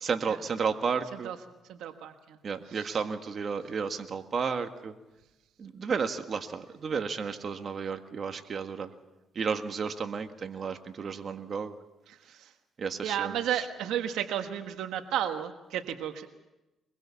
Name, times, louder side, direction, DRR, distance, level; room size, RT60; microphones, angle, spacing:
voice 1, 0.0-1.3 2.4-4.9 5.6-8.9 9.4-11.7 12.8-13.7, right 5 dB, 50° right, 7 dB, 1.7 m, -32 dB
voice 2, 1.7-2.4 2.8-3.0 12.4-12.5 13.0-16.3, right 10 dB, 85° right, 7 dB, 1.5 m, -33 dB
23.5 x 21.5 x 7.2 m, 1.0 s
cardioid pair, 90°, 0 cm